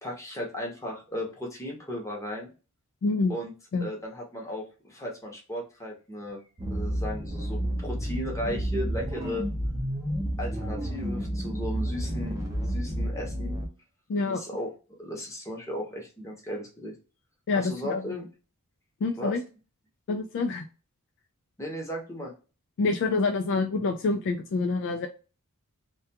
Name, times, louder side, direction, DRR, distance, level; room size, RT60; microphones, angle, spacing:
voice 1, 0.0-2.5 3.3-3.5 3.8-9.4 10.4-12.4 12.7-13.6 14.2-14.7 15.0-17.0 17.5-18.3 19.2-19.4 21.6-22.3, equal, 15° left, -1 dB, 0.8 m, -36 dB
voice 2, 3.0-3.3 3.7-3.9 14.1-14.4 17.5-18.0 19.0-19.4 20.1-20.7 22.8-25.1, left 3 dB, 55° left, 5 dB, 0.3 m, -26 dB
sound 1, 6.6-13.7, equal, 15° right, 0.5 m, -30 dB
2.3 x 2.2 x 2.7 m, 0.33 s
head